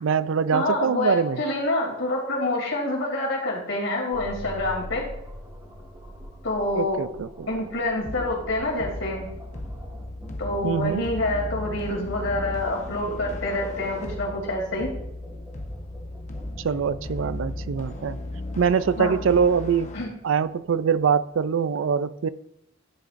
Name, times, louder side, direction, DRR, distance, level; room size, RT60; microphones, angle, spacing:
voice 1, 0.0-1.4 6.7-7.5 10.6-11.0 16.6-18.2 18.6-19.9 20.2-22.3, right 6 dB, 85° right, 0.4 m, -23 dB
voice 2, 0.5-5.0 6.4-7.0 7.5-9.3 10.4-14.9 19.0-19.2 19.9-20.1, left 2 dB, 85° left, 3.0 m, -27 dB
sound 1, 4.1-21.4, equal, 20° right, 2.0 m, -44 dB
sound 2, 8.0-20.0, left 1 dB, 40° left, 1.0 m, -36 dB
11.0 x 8.8 x 2.6 m
head